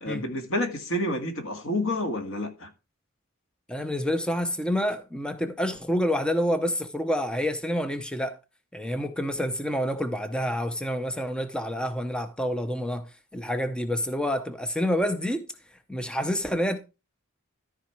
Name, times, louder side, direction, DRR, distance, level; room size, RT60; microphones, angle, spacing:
voice 1, 0.0-2.7, left 1 dB, 75° left, 2.0 m, -29 dB
voice 2, 3.7-8.4 8.7-15.5 15.9-16.8, equal, 5° left, 0.6 m, -28 dB
13.5 x 4.9 x 4.6 m
head